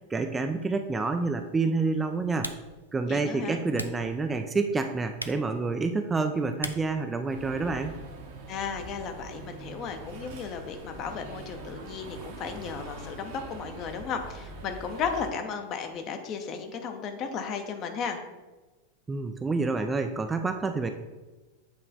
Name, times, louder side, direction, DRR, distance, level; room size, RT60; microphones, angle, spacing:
voice 1, 0.0-2.5 2.9-8.0 19.1-20.9, right 3 dB, 15° right, 6 dB, 0.3 m, -28 dB
Typing, 0.6-8.1, equal, 90° left, 0.3 m, -44 dB
voice 2, 3.1-3.6 8.5-18.2, left 6 dB, 35° left, 6 dB, 0.7 m, -35 dB
sound 1, 7.3-15.3, right 3 dB, 50° right, 0.9 m, -43 dB
8.0 x 3.2 x 3.9 m, 1.2 s
figure-of-eight pair, 90°, 0 cm